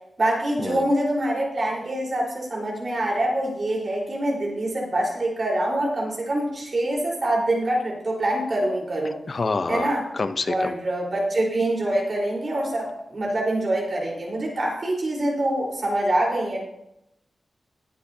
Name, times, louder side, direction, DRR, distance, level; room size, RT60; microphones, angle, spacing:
voice 1, 0.2-9.2 9.7-10.0 10.4-16.6, right 1 dB, 45° right, -3 dB, 4.1 m, -25 dB
voice 2, 9.3-10.7, left 3 dB, 45° left, 10 dB, 0.7 m, -27 dB
20.5 x 8.5 x 2.8 m, 0.81 s
wide cardioid pair, 150°, 0 cm